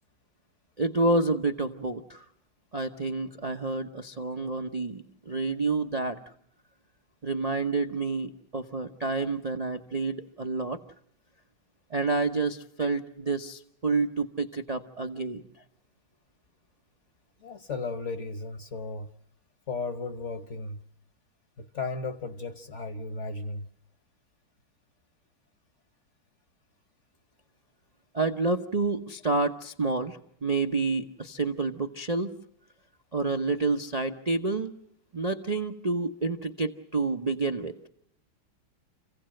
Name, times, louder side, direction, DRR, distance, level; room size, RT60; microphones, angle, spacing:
voice 1, 0.8-2.3 2.7-6.2 7.2-10.8 11.9-15.4 28.1-32.3 33.1-34.7 35.1-37.7, right 3 dB, 75° right, 0.3 m, -29 dB
voice 2, 17.4-19.1 19.7-20.8 21.6-23.7, left 3 dB, 45° left, 1.0 m, -35 dB
28.0 x 16.5 x 7.7 m
omnidirectional pair, 2.2 m